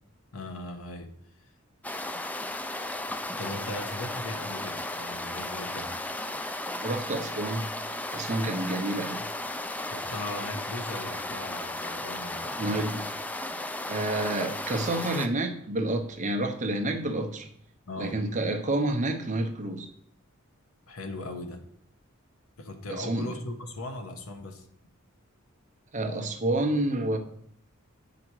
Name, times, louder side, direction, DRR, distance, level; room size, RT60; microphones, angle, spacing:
voice 1, 0.3-1.1 1.4-1.5 3.3-5.9 9.9-12.8 17.9-18.2 20.9-21.6 22.6-24.7, left 2 dB, 80° left, 6 dB, 1.1 m, -38 dB
sound 1, 1.8-15.3, left 1 dB, 5° left, 0.3 m, -35 dB
voice 2, 6.8-7.6 8.1-9.2 12.6-13.1 13.9-17.5 18.0-19.9 22.9-23.3 25.9-27.2, right 2 dB, 35° right, 5 dB, 0.8 m, -29 dB
8.6 x 5.0 x 4.6 m, 0.66 s
head